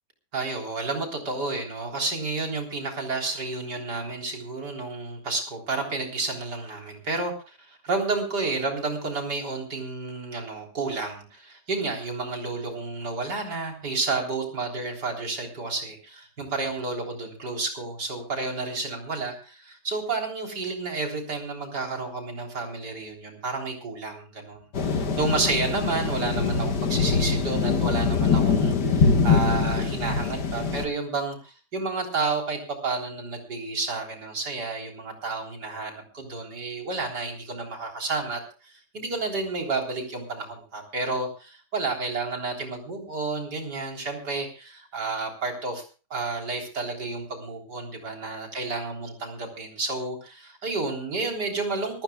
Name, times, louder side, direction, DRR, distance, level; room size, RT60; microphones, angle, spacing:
voice 1, 0.3-45.8 46.1-52.0, right 3 dB, 75° right, 1 dB, 4.3 m, -31 dB
sound 1, 24.7-30.8, left 5 dB, 80° left, 2.2 m, -23 dB
25.5 x 14.5 x 2.3 m, 0.35 s
omnidirectional pair, 1.8 m